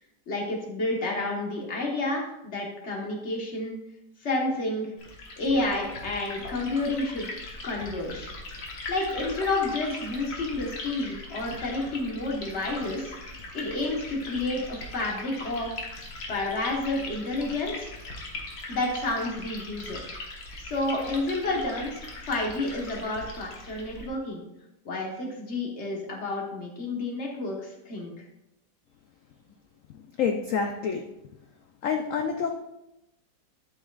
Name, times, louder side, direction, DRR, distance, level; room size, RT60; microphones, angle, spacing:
voice 1, 0.3-3.8 4.2-4.9 5.4-7.3 7.6-8.3 8.9-13.1 13.5-16.0 16.3-17.9 18.7-20.0 20.6-24.4 24.8-28.1, left 2 dB, 40° left, -1 dB, 1.5 m, -30 dB
Liquid, 5.0-24.1, left 2 dB, 55° left, 1.6 m, -40 dB
voice 2, 30.2-31.0 31.8-32.6, left 6 dB, 80° left, 4 dB, 0.7 m, -27 dB
11.5 x 5.4 x 2.4 m, 0.91 s
omnidirectional pair, 2.0 m